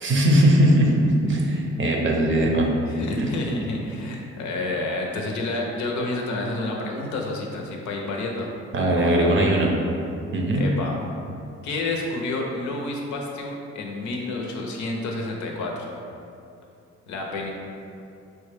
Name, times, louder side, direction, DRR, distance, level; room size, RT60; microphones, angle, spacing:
voice 1, 0.0-2.7 3.2-3.3 8.7-9.7 10.3-10.7, right 1 dB, 40° right, 0 dB, 0.6 m, -20 dB
voice 2, 2.8-8.5 8.9-9.4 10.5-11.0 11.6-15.9 17.1-17.5, left 2 dB, 70° left, 0 dB, 0.7 m, -29 dB
4.4 x 2.2 x 3.2 m, 2.6 s
cardioid pair, 90°, 30 cm